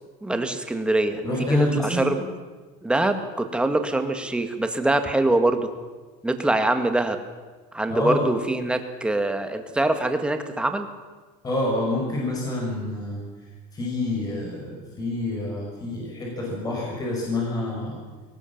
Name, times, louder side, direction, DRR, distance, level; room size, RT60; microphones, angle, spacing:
voice 1, 0.2-2.2 2.8-5.7 6.2-7.2 7.7-10.9, right 2 dB, 5° right, 7 dB, 1.7 m, -24 dB
voice 2, 1.2-2.1 7.9-8.3 11.4-13.2 13.7-18.0, left 2 dB, 20° left, -3 dB, 5.9 m, -27 dB
22.0 x 19.0 x 7.3 m, 1.3 s
cardioid pair, 150°, 18 cm